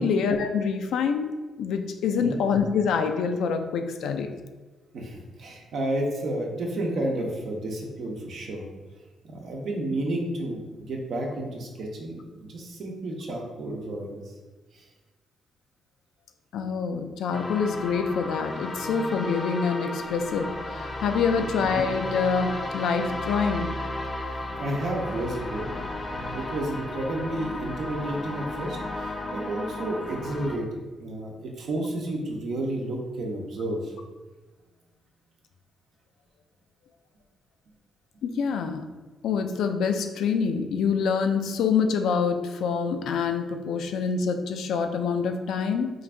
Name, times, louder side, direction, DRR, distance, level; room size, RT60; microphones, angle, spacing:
voice 1, 0.0-1.3 1.6-4.3 16.5-23.7 38.2-38.8 39.2-45.9, left 6 dB, 80° left, 6 dB, 0.4 m, -26 dB
voice 2, 4.9-8.7 9.3-14.3 14.7-14.9 21.4-21.5 24.3-25.7 26.1-30.7 31.0-33.9, right 1 dB, 70° right, 0 dB, 0.8 m, -31 dB
sound 1, 17.3-30.6, left 2 dB, 35° left, 0.6 m, -34 dB
3.9 x 2.6 x 3.3 m, 1.3 s
cardioid pair, 75°, 0 cm